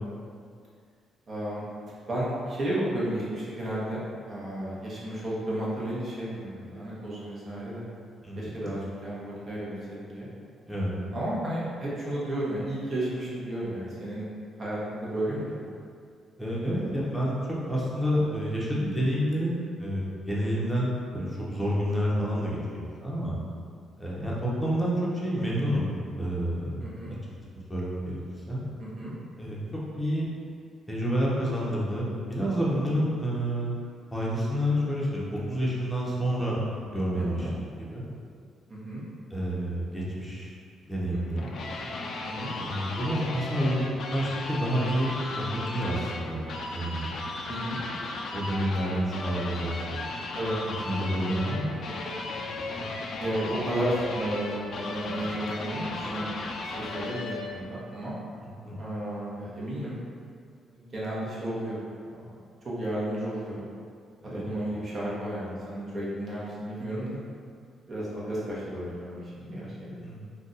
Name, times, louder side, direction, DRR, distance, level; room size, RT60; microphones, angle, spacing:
voice 1, 1.3-1.6 2.1-7.8 8.4-10.3 11.1-14.2 14.6-15.7 26.8-27.1 28.8-29.1 32.9-33.0 37.2-37.5 38.7-39.0 42.2-42.5 47.5-47.8 50.3-50.6 53.2-56.3 56.6-58.1 58.8-60.0 60.7-62.3 62.6-63.6 64.3-67.2 67.9-70.0, right 1 dB, 40° right, -7 dB, 0.9 m, -33 dB
voice 2, 8.2-8.7 10.7-10.9 16.4-17.4 17.7-23.4 24.0-25.8 26.1-26.8 27.7-28.2 28.5-28.6 29.4-29.6 29.9-30.3 30.9-33.7 34.1-36.6 36.9-37.5 37.8-38.0 39.3-40.5 40.9-41.5 42.6-46.4 46.7-47.2 48.3-50.1 50.6-51.7 58.6-58.7 64.2-64.4 70.0-70.2, equal, 5° left, -6 dB, 0.8 m, -29 dB
sound 1, 41.1-57.6, left 3 dB, 60° left, 0.3 m, -36 dB
2.5 x 2.3 x 3.9 m, 2.2 s
cardioid pair, 90°, 0 cm